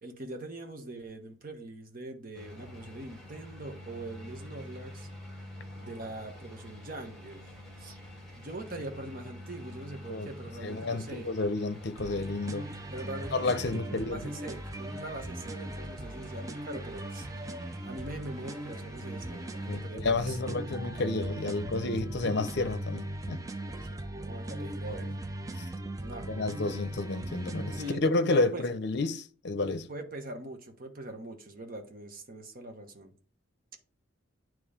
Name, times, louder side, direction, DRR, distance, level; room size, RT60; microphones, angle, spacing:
voice 1, 0.0-5.1 5.8-7.5 7.8-8.0 8.3-11.3 12.9-17.4 17.8-20.6 23.7-25.1 26.0-26.3 27.7-28.6 29.9-33.1, right 1 dB, 45° right, 1.2 m, -42 dB
sound 1, 2.3-19.8, left 1 dB, ahead, 2.1 m, -47 dB
voice 2, 10.6-12.7 13.3-14.3 19.7-23.4 24.6-25.1 25.6-25.7 26.3-29.9, left 3 dB, 55° left, 0.6 m, -31 dB
sound 2, 12.0-28.0, right 1 dB, 15° right, 0.4 m, -39 dB
9.2 x 3.1 x 5.0 m
head